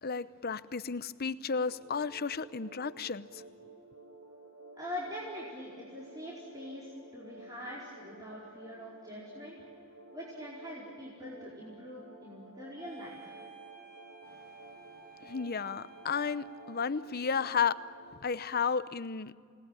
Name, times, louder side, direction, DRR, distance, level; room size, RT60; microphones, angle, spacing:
voice 1, 0.0-3.4 15.2-17.8 18.2-19.3, left 6 dB, 45° left, 0.8 m, -33 dB
sound 1, 1.6-18.1, right 2 dB, 75° right, 6.6 m, -53 dB
voice 2, 4.8-9.5 10.1-13.4, left 1 dB, 20° right, 4.7 m, -43 dB
sound 2, 12.8-17.0, right 6 dB, 40° right, 4.1 m, -54 dB
29.5 x 19.5 x 9.1 m
head